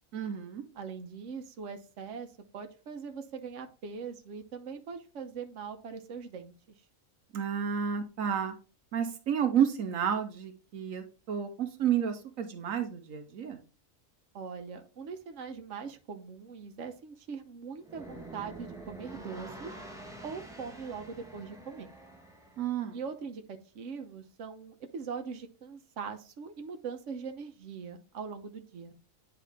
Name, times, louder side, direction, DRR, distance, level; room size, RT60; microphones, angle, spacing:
voice 1, 0.1-0.6 7.3-8.5 8.9-13.6 22.6-23.0, right 8 dB, 80° right, 6 dB, 1.2 m, -31 dB
voice 2, 0.7-2.3 2.5-6.5 14.3-19.8 20.2-21.9 22.9-28.9, right 5 dB, 65° right, 6 dB, 1.2 m, -41 dB
sound 1, 17.8-22.9, right 1 dB, 5° right, 1.2 m, -47 dB
10.0 x 3.7 x 3.5 m, 0.35 s
omnidirectional pair, 1.4 m